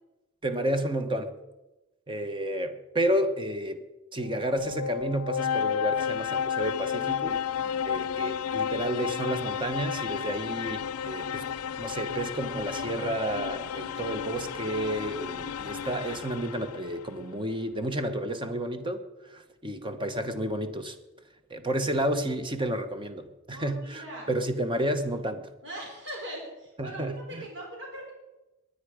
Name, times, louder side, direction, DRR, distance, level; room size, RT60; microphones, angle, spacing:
voice 1, 0.4-1.3 2.1-3.8 4.1-7.4 7.8-11.5 11.8-21.0 21.5-25.5 26.8-27.5, right 1 dB, 25° right, 1.1 m, -31 dB
sound 1, 4.2-17.0, left 7 dB, 90° left, 0.5 m, -32 dB
voice 2, 23.5-24.3 25.6-28.1, right 1 dB, 60° right, 4.1 m, -41 dB
20.5 x 9.9 x 5.0 m
head